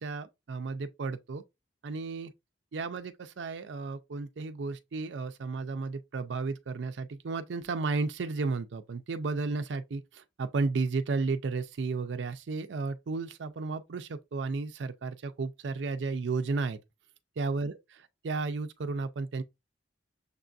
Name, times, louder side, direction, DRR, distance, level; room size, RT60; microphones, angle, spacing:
voice 1, 0.0-1.4 1.8-2.3 2.7-16.8 17.4-19.4, right 4 dB, 75° right, 0.5 m, -33 dB
6.5 x 2.3 x 2.5 m
head